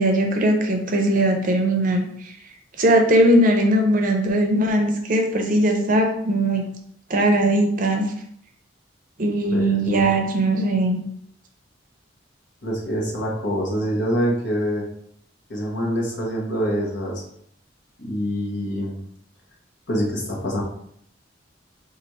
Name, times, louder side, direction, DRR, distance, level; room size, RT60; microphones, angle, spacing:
voice 1, 0.0-2.3 2.8-6.6 7.1-8.1 9.2-11.0, right 1 dB, 45° right, 3 dB, 0.5 m, -19 dB
voice 2, 12.6-14.8 15.5-17.2 18.0-19.0 19.9-20.6, equal, 70° left, -2 dB, 1.1 m, -25 dB
4.0 x 2.5 x 3.0 m, 0.68 s
head